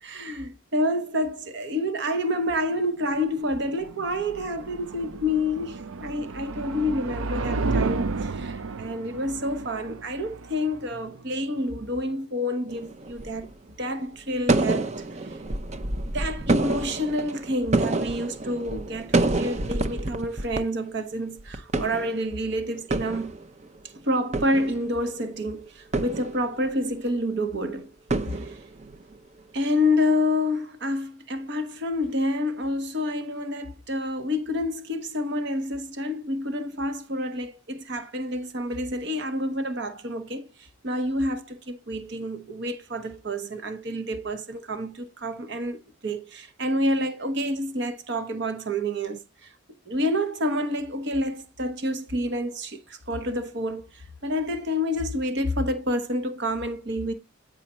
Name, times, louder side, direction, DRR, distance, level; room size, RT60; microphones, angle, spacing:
voice 1, 0.0-15.3 16.1-23.4 23.9-27.9 28.3-28.6 29.5-49.5 49.9-57.1, left 1 dB, 55° right, 1.0 m, -28 dB
sound 1, 3.2-12.1, right 3 dB, 80° right, 0.5 m, -32 dB
sound 2, 12.7-13.5 14.5-20.6 20.9-21.0 21.4-22.5 22.7-23.8 24.2-25.2 25.9-26.8 28.1-29.1, right 2 dB, 35° right, 0.6 m, -28 dB
9.1 x 4.9 x 4.2 m
head